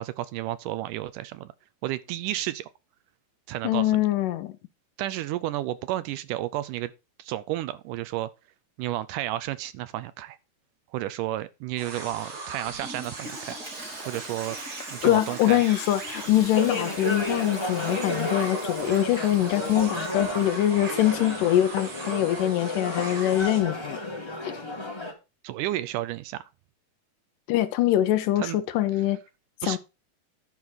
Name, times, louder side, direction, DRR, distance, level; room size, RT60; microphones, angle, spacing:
voice 1, 0.0-1.5 1.8-2.7 3.5-4.1 5.0-6.9 7.2-8.3 8.8-10.4 10.9-13.6 14.1-14.6 14.9-15.6 25.4-26.5 28.4-28.6 29.6-29.8, right 14 dB, 80° right, 2.0 m, -32 dB
voice 2, 3.6-4.5 15.0-24.0 24.4-24.6 27.5-29.2 29.6-29.8, left 13 dB, 80° left, 2.2 m, -23 dB
sound 1, 11.8-23.6, right 2 dB, 60° right, 5.4 m, -39 dB
Toilet flush, 12.8-21.4, right 1 dB, 25° right, 3.7 m, -43 dB
sound 2, 16.5-25.1, left 2 dB, 20° left, 0.8 m, -32 dB
11.0 x 5.5 x 4.7 m
omnidirectional pair, 3.9 m